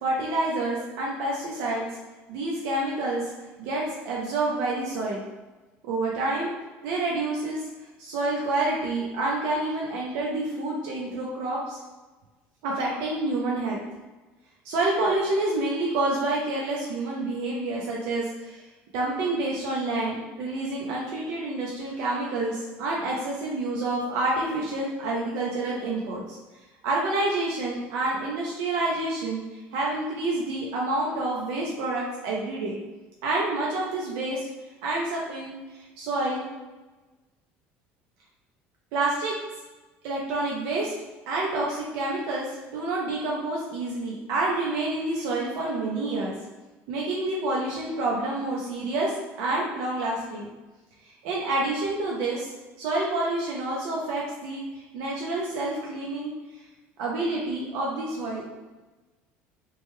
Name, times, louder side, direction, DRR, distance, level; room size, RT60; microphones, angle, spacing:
voice 1, 0.0-1.8 2.3-3.2 3.6-5.2 5.8-6.5 6.8-7.6 8.0-11.8 12.6-13.8 14.6-18.6 18.9-26.4 26.8-32.8 33.2-34.5 34.8-36.4 38.9-39.3 40.0-40.9 41.3-46.3 46.9-50.5 51.2-52.5 52.8-56.3 57.0-58.4, right 2 dB, 75° right, -3 dB, 0.5 m, -28 dB
3.0 x 2.1 x 3.1 m, 1.2 s
cardioid pair, 155°, 5 cm